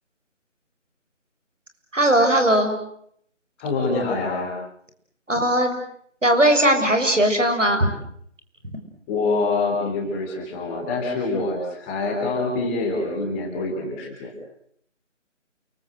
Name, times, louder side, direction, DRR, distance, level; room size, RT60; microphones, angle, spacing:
voice 1, 1.9-2.8 5.3-5.8 6.2-7.9 8.7-8.8, right 1 dB, 80° right, 6 dB, 6.9 m, -19 dB
voice 2, 3.6-4.5 9.1-14.3, left 3 dB, 10° left, 0 dB, 3.7 m, -25 dB
29.5 x 23.5 x 7.9 m, 0.68 s
figure-of-eight pair, 160°, 37 cm